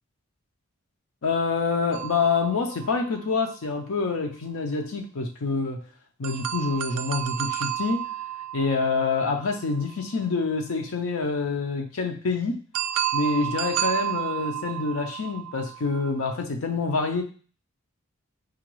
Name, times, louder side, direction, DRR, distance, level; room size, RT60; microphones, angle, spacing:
voice 1, 1.2-5.8 6.2-8.1 8.5-12.6 13.1-17.2, left 4 dB, 65° left, 3 dB, 0.6 m, -26 dB
sound 1, 1.9-3.7 6.2-10.1 12.7-16.2, right 11 dB, 85° right, 0.3 m, -32 dB
4.8 x 2.3 x 3.0 m, 0.38 s
head